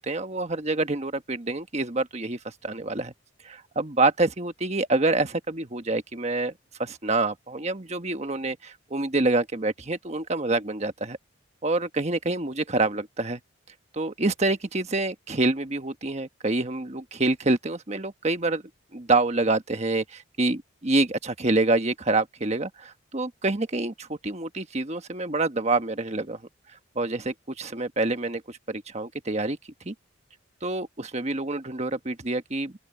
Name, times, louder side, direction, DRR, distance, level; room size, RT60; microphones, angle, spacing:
voice 1, 0.0-3.1 3.4-6.5 6.8-11.2 11.6-13.4 13.9-18.6 18.9-26.4 26.7-29.6 29.8-29.9 30.6-32.9, right 2 dB, 35° right, 1.3 m, -27 dB
open air
head